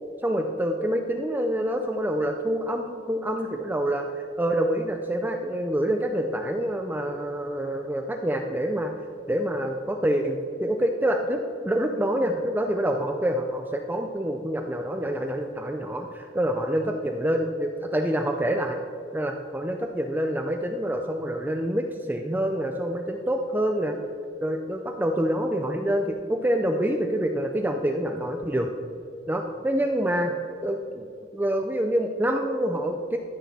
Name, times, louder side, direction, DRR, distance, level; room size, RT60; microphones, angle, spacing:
voice 1, 0.2-4.1 4.4-8.9 9.3-18.8 19.1-23.9 24.4-28.7 29.3-30.3 30.6-31.1 31.3-33.2, right 1 dB, 10° right, 4 dB, 0.4 m, -26 dB
13.0 x 6.3 x 4.1 m, 2.4 s
head